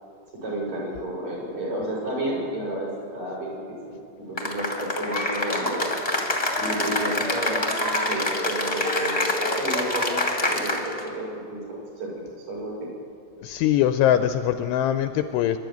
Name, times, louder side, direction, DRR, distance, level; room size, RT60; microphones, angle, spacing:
voice 1, 0.4-3.8 4.2-5.9 6.6-12.9, right 1 dB, 45° right, -4 dB, 7.7 m, -31 dB
Cheering / Applause, 4.4-11.1, left 2 dB, 15° left, 1.2 m, -26 dB
voice 2, 13.4-15.6, left 11 dB, 80° left, 10 dB, 2.5 m, -22 dB
25.0 x 12.5 x 9.3 m, 2.5 s
omnidirectional pair, 5.2 m